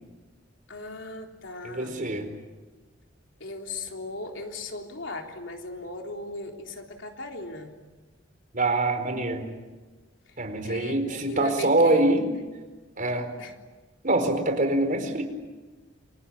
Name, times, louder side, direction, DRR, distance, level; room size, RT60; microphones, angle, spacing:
voice 1, 0.7-2.0 3.4-7.8 10.3-10.4 10.6-12.1 13.4-13.5, left 2 dB, 70° left, 2 dB, 3.7 m, -37 dB
voice 2, 1.6-2.3 8.5-9.5 10.4-12.2 13.0-13.3 14.0-15.2, right 2 dB, 45° right, 6 dB, 4.5 m, -24 dB
28.5 x 23.5 x 8.8 m, 1.3 s
head